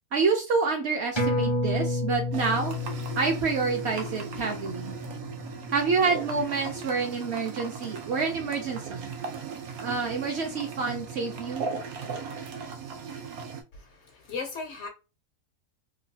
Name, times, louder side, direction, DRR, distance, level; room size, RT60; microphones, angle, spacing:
voice 1, 0.1-2.8 3.2-5.0 5.7-9.1 9.8-11.7, right 4 dB, 60° right, 0.7 m, -28 dB
sound 1, 1.2-6.1 6.5-6.6, left 1 dB, 30° left, 0.5 m, -31 dB
sound 2, 2.3-13.6, right 5 dB, 90° right, 1.1 m, -37 dB
voice 2, 13.7-14.9, left 4 dB, 65° left, 0.7 m, -37 dB
2.9 x 2.2 x 2.7 m
omnidirectional pair, 1.5 m